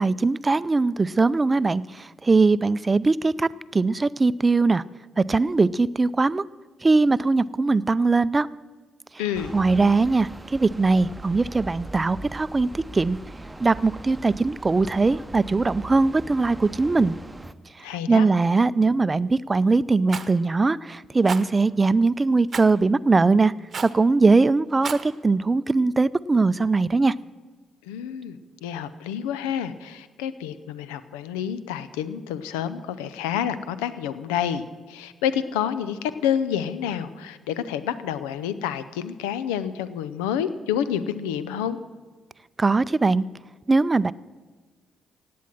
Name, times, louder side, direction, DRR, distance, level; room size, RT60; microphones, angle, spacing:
voice 1, 0.0-4.8 5.2-6.4 6.8-8.5 9.5-13.2 13.6-17.1 18.1-23.5 23.8-27.1 42.6-43.2 43.7-44.1, right 3 dB, 30° right, 19 dB, 0.5 m, -21 dB
voice 2, 9.2-9.5 17.8-18.3 27.8-41.8, left 9 dB, 80° left, 14 dB, 0.6 m, -29 dB
sound 1, 9.3-17.5, right 1 dB, 15° right, 0.9 m, -40 dB
Rattle, 20.1-20.3 21.3-21.4 22.5-22.7 23.7-24.0 24.7-25.1, right 6 dB, 45° right, 0.9 m, -32 dB
16.5 x 9.4 x 7.5 m, 1.4 s
hypercardioid pair, 40°, 0 cm